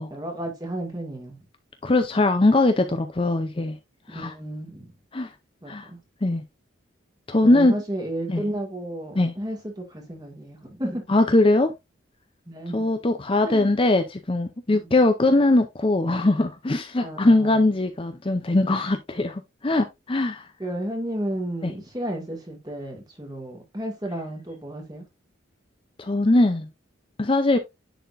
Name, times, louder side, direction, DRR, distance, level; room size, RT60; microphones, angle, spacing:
voice 1, 0.1-1.4 4.1-4.9 5.6-6.0 7.4-11.0 12.5-12.8 13.4-13.7 14.7-15.0 17.0-17.5 20.6-25.0, right 1 dB, 20° right, 2.2 m, -33 dB
voice 2, 1.8-3.8 4.1-4.3 5.1-5.3 5.7-5.9 6.2-6.4 7.3-7.7 8.3-8.4 9.1-9.3 11.1-11.7 12.7-20.5 21.6-21.7 26.0-26.7 27.2-27.6, left 2 dB, 25° left, 0.6 m, -21 dB
10.0 x 4.2 x 2.6 m
head